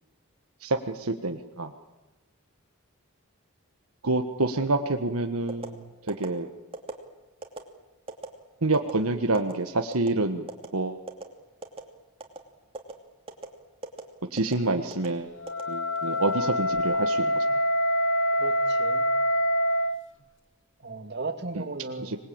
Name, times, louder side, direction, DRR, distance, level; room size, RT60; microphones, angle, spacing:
voice 1, 0.6-1.7 4.0-6.5 8.6-10.5 10.7-11.0 14.3-15.3 15.7-17.4 21.5-21.6 22.0-22.2, right 2 dB, 80° right, 6 dB, 1.5 m, -27 dB
sound 1, 5.5-5.7 6.1-6.3 6.7-7.0 7.4-7.6 8.1-8.3 8.7-8.9 9.3-9.5 9.9-10.1 10.5-10.7 11.1-11.2 11.6-11.9 12.2-12.4 12.7-12.9 13.3-13.5 13.8-14.0 14.4-14.6 14.9-15.1 15.5-16.1 16.5-16.8, right 2 dB, 25° right, 2.7 m, -37 dB
Wind instrument woodwind instrument, 15.4-20.0, equal, 55° left, 1.2 m, -25 dB
voice 2, 18.4-19.1 20.8-22.1, right 3 dB, 50° right, 6 dB, 2.4 m, -36 dB
26.0 x 20.5 x 8.8 m, 1.1 s
head